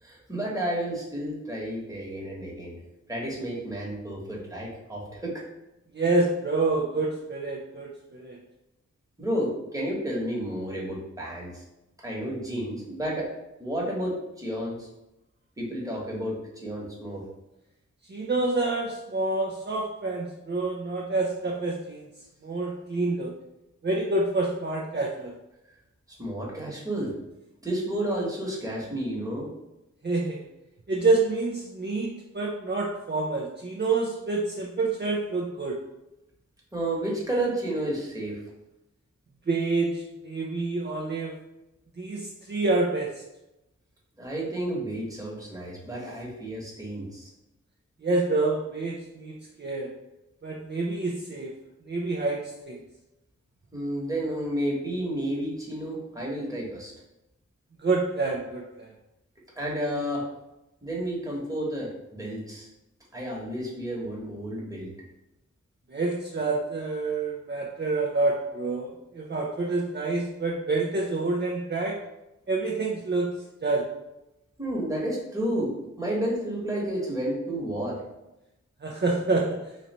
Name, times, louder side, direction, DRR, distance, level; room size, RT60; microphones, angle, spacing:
voice 1, 0.0-2.7 3.1-5.4 9.2-11.6 12.0-13.3 13.6-14.9 15.6-17.2 26.2-27.1 27.6-29.5 36.7-38.4 44.2-47.3 53.7-56.9 59.6-60.3 60.8-62.7 63.1-64.9 74.6-78.0, right 1 dB, 10° right, -4 dB, 1.3 m, -31 dB
voice 2, 5.9-8.4 18.1-22.1 22.4-23.3 23.8-25.3 30.0-30.5 30.9-35.8 39.5-41.3 42.0-43.1 48.0-49.3 49.6-49.9 50.4-51.5 51.9-52.4 52.7-52.8 57.8-58.9 65.9-72.0 72.5-73.3 73.6-73.9 78.8-79.5, right 3 dB, 35° right, -2 dB, 0.6 m, -27 dB
3.1 x 2.6 x 4.3 m, 0.93 s
wide cardioid pair, 60°, 30 cm